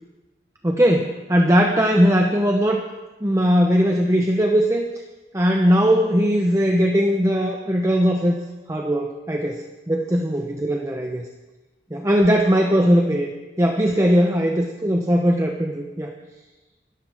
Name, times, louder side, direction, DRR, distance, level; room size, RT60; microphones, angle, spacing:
voice 1, 0.6-2.8 3.2-4.9 5.3-8.3 8.7-9.6 9.9-11.3 11.9-13.3 13.6-16.1, equal, 15° right, 2 dB, 0.9 m, -19 dB
25.5 x 13.5 x 3.6 m, 1.1 s
head